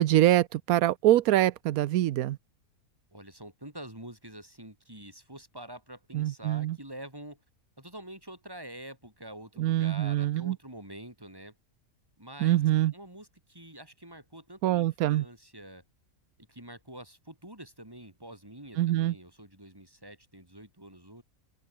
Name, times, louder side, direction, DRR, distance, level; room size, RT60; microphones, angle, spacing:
voice 1, 0.0-2.4 6.1-6.8 9.6-10.6 12.4-12.9 14.6-15.2 18.8-19.1, right 14 dB, 90° right, 1.1 m, -24 dB
voice 2, 3.1-7.4 7.8-11.5 12.2-12.6 12.9-15.8 16.5-21.2, right 1 dB, 15° right, 5.0 m, -46 dB
open air
omnidirectional pair, 1.5 m